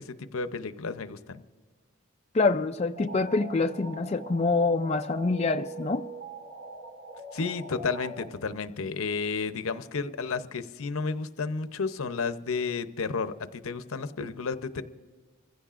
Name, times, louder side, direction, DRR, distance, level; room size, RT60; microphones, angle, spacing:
voice 1, 0.0-1.4 7.3-14.8, left 4 dB, 75° left, 11 dB, 0.7 m, -32 dB
voice 2, 2.3-6.0, left 3 dB, 30° left, 5 dB, 0.3 m, -26 dB
sound 1, 2.9-8.3, right 2 dB, 70° right, 3.4 m, -42 dB
26.0 x 16.0 x 2.5 m, 1.5 s
head